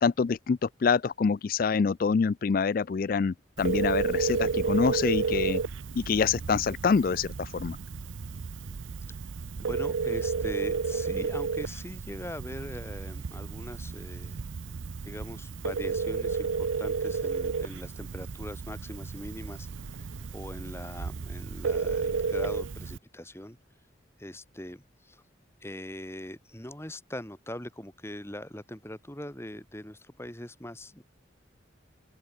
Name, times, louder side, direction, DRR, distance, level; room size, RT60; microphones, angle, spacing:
voice 1, 0.0-5.6 6.0-7.8, left 5 dB, 45° left, 0.3 m, -26 dB
Telephone, 3.6-23.0, right 5 dB, 75° right, 0.6 m, -32 dB
voice 2, 9.6-14.4 15.0-23.6 24.2-25.2 25.6-31.0, left 1 dB, 15° left, 4.9 m, -42 dB
open air
head